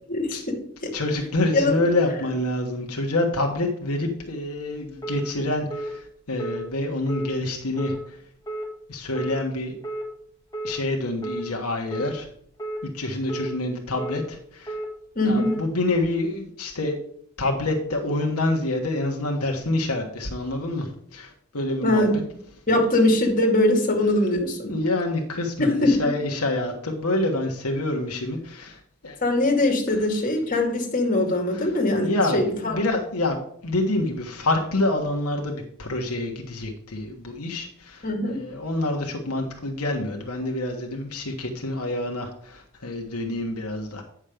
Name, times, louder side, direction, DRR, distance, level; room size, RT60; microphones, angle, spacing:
voice 1, 0.1-0.6 1.5-1.8 15.2-15.5 21.8-22.1 22.7-24.7 25.6-26.1 29.2-32.5 38.0-38.4, left 1 dB, 40° left, 0 dB, 2.3 m, -21 dB
voice 2, 0.9-8.2 8.9-9.7 10.6-12.3 12.8-14.8 15.2-17.0 17.4-22.2 24.6-29.2 29.9-30.0 31.5-33.4 33.6-44.0, left 2 dB, 80° left, 1 dB, 1.3 m, -27 dB
sound 1, 5.0-5.2 5.7-5.9 6.4-6.6 7.1-7.3 7.8-8.0 8.5-8.7 9.2-9.4 9.8-10.1 10.5-10.7 11.2-11.4 11.9-12.1 12.6-12.8 13.3-13.5 14.0-14.2 14.7-14.9 15.4-15.6, right 1 dB, 15° left, 1.7 m, -31 dB
8.9 x 6.3 x 5.1 m, 0.67 s
head